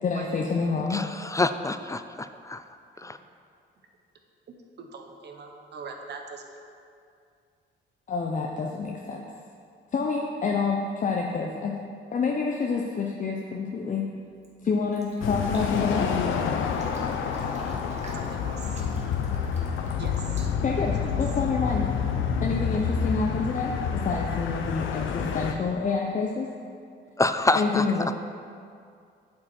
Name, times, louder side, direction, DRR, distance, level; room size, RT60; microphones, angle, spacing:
voice 1, 0.0-1.0 8.1-9.2 9.9-11.7 12.1-14.1 14.6-16.1 20.6-21.9 22.4-26.5 27.5-28.1, left 4 dB, 40° left, 0 dB, 0.8 m, -28 dB
voice 2, 0.9-2.6 3.0-3.2 27.2-27.8, left 2 dB, 15° left, 10 dB, 0.4 m, -26 dB
voice 3, 4.5-6.6 18.1-18.8 20.0-20.5 21.0-21.2, right 4 dB, 60° right, 3 dB, 1.2 m, -42 dB
Fill (with liquid), 14.1-21.2, right 1 dB, 35° right, 1.9 m, -47 dB
sound 1, 15.2-25.5, left 7 dB, 75° left, 0.7 m, -28 dB
8.6 x 7.7 x 4.4 m, 2.3 s
cardioid pair, 90°, 20 cm